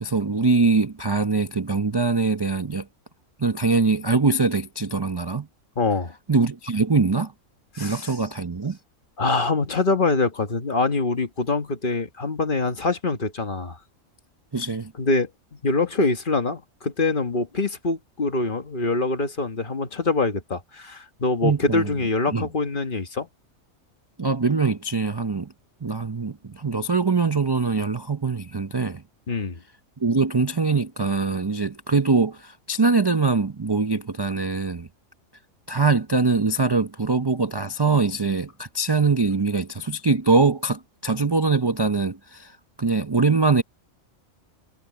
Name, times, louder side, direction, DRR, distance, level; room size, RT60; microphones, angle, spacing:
voice 1, 0.0-2.9 3.4-5.5 6.3-7.3 7.8-8.8 14.5-14.9 21.4-21.9 22.3-22.5 24.2-25.5 25.8-29.0 30.0-34.9 35.7-43.6, right 4 dB, 30° right, 0.5 m, -23 dB
voice 2, 5.8-6.2 7.7-8.1 9.2-13.8 15.0-23.3 29.3-29.6, left 3 dB, 40° left, 1.5 m, -24 dB
omnidirectional pair, 1.4 m